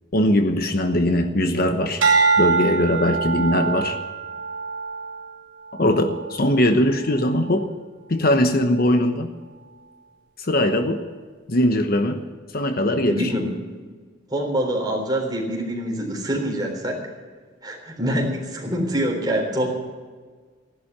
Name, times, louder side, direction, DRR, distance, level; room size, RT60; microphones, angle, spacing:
voice 1, 0.1-2.0 2.4-4.0 5.7-7.7 8.1-9.3 10.4-11.0 11.5-12.2 12.5-13.3, left 1 dB, 50° left, 7 dB, 1.0 m, -20 dB
sound 1, 2.0-6.5 7.0-7.4, right 4 dB, 80° right, 2.8 m, -24 dB
voice 2, 13.1-13.5 14.3-17.0 17.6-19.7, equal, 20° right, 0 dB, 3.8 m, -25 dB
15.5 x 11.5 x 7.3 m, 1.5 s
head